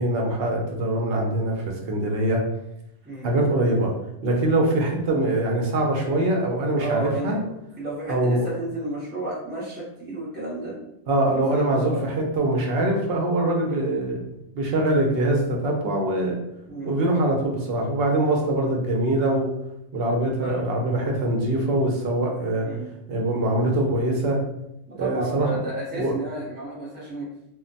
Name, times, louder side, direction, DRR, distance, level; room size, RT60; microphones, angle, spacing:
voice 1, 0.0-2.4 3.2-3.9 4.2-7.4 8.1-8.5 11.1-14.2 14.5-16.4 16.8-19.5 19.9-22.7 23.1-24.4 25.0-25.5 25.9-26.1, right 1 dB, 60° right, 0 dB, 0.8 m, -23 dB
voice 2, 6.8-10.8 11.3-12.0 13.6-13.8 16.7-16.9 20.4-20.6 22.6-22.9 24.9-27.3, right 2 dB, 10° right, -7 dB, 0.7 m, -32 dB
2.2 x 2.1 x 3.8 m, 0.81 s
omnidirectional pair, 1.2 m